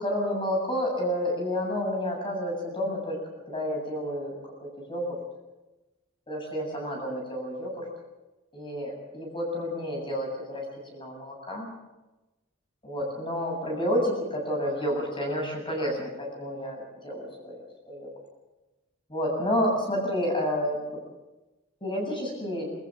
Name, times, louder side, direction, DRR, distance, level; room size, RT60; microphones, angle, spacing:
voice 1, 0.0-3.2 3.5-5.2 6.3-7.8 8.5-10.6 10.9-11.7 12.8-18.1 19.1-20.8 21.8-22.7, equal, 25° left, -1 dB, 8.0 m, -30 dB
25.0 x 14.5 x 7.5 m, 1.1 s
head